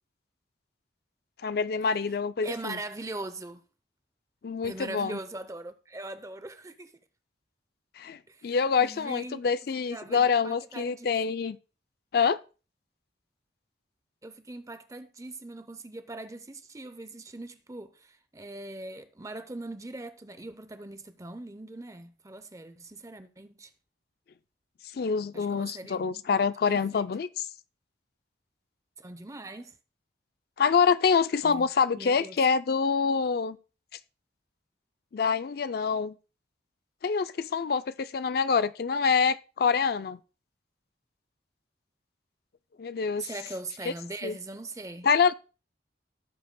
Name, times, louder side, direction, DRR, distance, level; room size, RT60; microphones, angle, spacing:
voice 1, 1.4-2.8 4.4-5.2 8.0-11.6 12.1-12.4 24.9-27.5 30.6-33.6 35.1-36.1 37.0-40.2 42.8-43.3 44.2-44.3 45.0-45.3, left 5 dB, 55° left, 0.4 m, -26 dB
voice 2, 2.4-3.6 4.6-6.9 8.3-9.4 9.9-11.1 14.2-23.7 25.3-26.4 26.7-27.0 29.0-29.7 31.4-31.7 32.0-32.4 43.2-45.1, right 2 dB, 20° right, 0.6 m, -41 dB
16.5 x 7.7 x 2.2 m
head